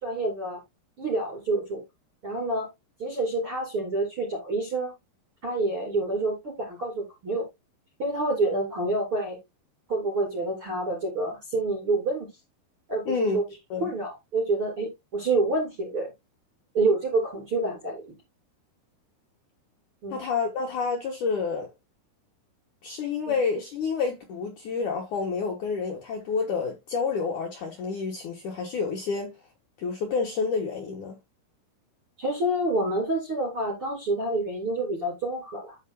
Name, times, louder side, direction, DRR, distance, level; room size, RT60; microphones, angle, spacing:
voice 1, 0.0-0.6 1.0-1.8 2.2-2.7 3.0-4.9 5.4-7.4 8.0-9.4 9.9-12.3 12.9-13.4 13.8-16.1 16.7-18.1 20.0-20.2 23.3-23.4 32.2-35.8, right 2 dB, 30° right, 3.4 m, -27 dB
voice 2, 13.1-13.5 13.7-14.0 20.1-21.7 22.8-29.3 29.8-31.2, left 5 dB, 85° left, 1.7 m, -29 dB
13.5 x 4.8 x 2.2 m
omnidirectional pair, 5.8 m